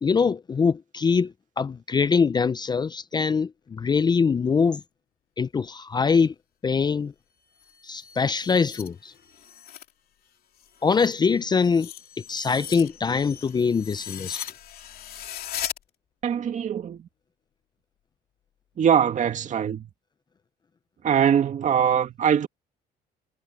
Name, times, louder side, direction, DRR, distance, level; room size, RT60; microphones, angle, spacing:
voice 1, 0.0-4.8 5.4-6.3 6.6-7.1 7.8-9.1 10.8-11.9 12.3-14.4, left 5 dB, 25° left, 0.5 m, -23 dB
sound 1, 7.5-9.9 10.3-15.8, left 10 dB, 60° left, 3.0 m, -39 dB
voice 2, 16.2-17.1 18.8-19.9 21.0-22.5, right 8 dB, 45° right, 2.1 m, -22 dB
cardioid pair, 110°, 17 cm